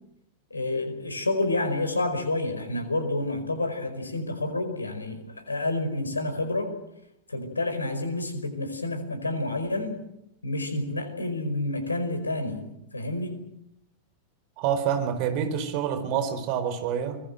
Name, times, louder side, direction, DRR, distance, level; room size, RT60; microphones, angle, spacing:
voice 1, 0.5-6.7 7.3-10.0 10.4-13.4, left 2 dB, 80° left, 9 dB, 5.0 m, -29 dB
voice 2, 14.6-17.2, right 8 dB, 45° right, 10 dB, 4.2 m, -27 dB
24.5 x 21.0 x 7.9 m, 0.79 s
figure-of-eight pair, 90°, 0 cm